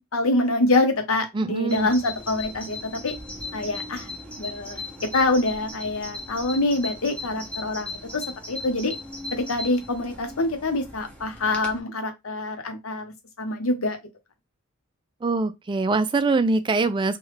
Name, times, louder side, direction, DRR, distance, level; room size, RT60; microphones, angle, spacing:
voice 1, 0.0-3.1 3.5-4.1 4.4-4.8 5.1-8.9 9.3-14.0, left 2 dB, 90° left, 0.8 m, -25 dB
voice 2, 1.3-1.9 15.2-17.2, right 3 dB, 25° right, 0.3 m, -23 dB
Bird vocalization bird call bird song, 1.7-11.8, left 2 dB, 5° left, 0.8 m, -38 dB
3.1 x 2.3 x 3.2 m
head